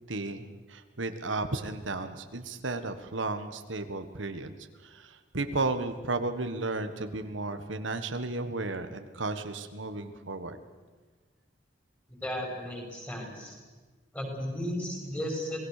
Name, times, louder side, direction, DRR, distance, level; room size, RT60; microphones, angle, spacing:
voice 1, 0.1-4.5 4.8-10.6, right 3 dB, 90° right, 8 dB, 1.6 m, -34 dB
voice 2, 12.1-13.5 14.1-15.7, equal, 10° left, 1 dB, 6.0 m, -35 dB
27.0 x 19.5 x 6.7 m, 1.4 s
head